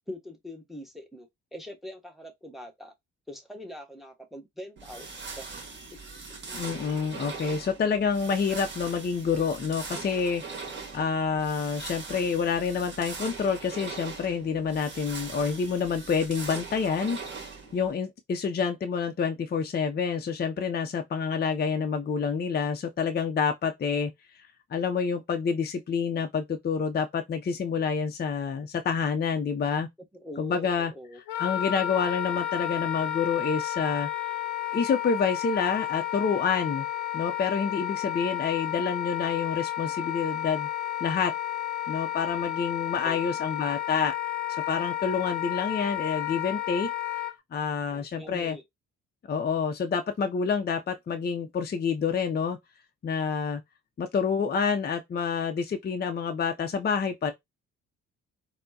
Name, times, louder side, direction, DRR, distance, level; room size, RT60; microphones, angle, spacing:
voice 1, 0.1-2.9 3.3-5.1 5.3-5.5 6.4-6.7 30.1-31.2 43.0-43.2 47.9-48.6, left 1 dB, ahead, 1.0 m, -43 dB
sound 1, 4.8-17.9, right 4 dB, 35° right, 1.7 m, -41 dB
voice 2, 6.5-17.2 17.7-24.1 24.7-29.9 30.4-34.1 34.7-36.9 37.1-40.7 41.0-41.3 41.9-44.1 44.7-46.9 47.5-48.6 49.3-52.6 53.0-53.6 54.0-57.3, left 6 dB, 35° left, 0.6 m, -28 dB
Wind instrument woodwind instrument, 31.3-47.3, left 13 dB, 85° left, 0.6 m, -32 dB
4.3 x 2.1 x 2.8 m
cardioid pair, 90°, 30 cm